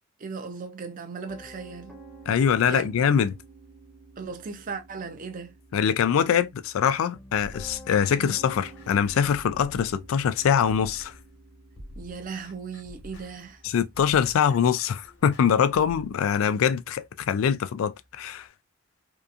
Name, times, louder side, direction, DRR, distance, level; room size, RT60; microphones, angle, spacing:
voice 1, 0.2-2.0 2.6-3.1 4.2-5.5 8.2-8.3 12.0-13.6, right 5 dB, 40° right, 0.5 m, -37 dB
Piano, 1.3-18.4, right 1 dB, 5° left, 0.7 m, -51 dB
voice 2, 2.3-3.3 5.7-11.1 13.6-18.5, left 7 dB, 90° left, 0.3 m, -23 dB
sound 1, 7.4-11.3 11.8-16.1, left 1 dB, 60° left, 1.1 m, -48 dB
2.7 x 2.3 x 2.3 m
head